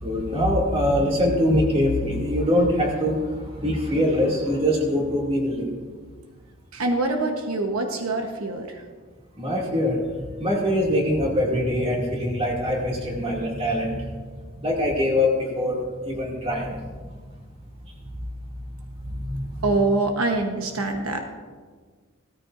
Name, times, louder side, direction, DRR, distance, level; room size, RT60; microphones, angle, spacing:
voice 1, 0.0-3.2 3.6-5.7 9.4-10.0 10.4-14.0 14.6-16.8 19.2-19.8, left 1 dB, 25° right, -2 dB, 2.4 m, -23 dB
voice 2, 6.7-8.8 19.6-21.2, right 2 dB, 80° right, 3 dB, 1.1 m, -24 dB
17.0 x 13.5 x 2.6 m, 1.5 s
head